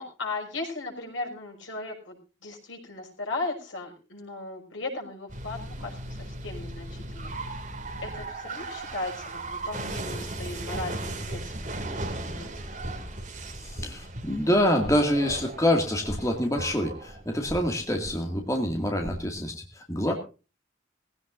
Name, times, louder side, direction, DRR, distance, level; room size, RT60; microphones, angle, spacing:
voice 1, 0.0-7.4 8.0-11.7 12.2-12.7 20.1-20.2, left 2 dB, 90° left, 1 dB, 5.7 m, -37 dB
sound 1, 5.3-19.5, right 2 dB, 40° right, 2.4 m, -37 dB
voice 2, 13.6-20.1, left 1 dB, 15° left, 2 dB, 2.1 m, -26 dB
20.0 x 16.0 x 2.6 m, 0.32 s
head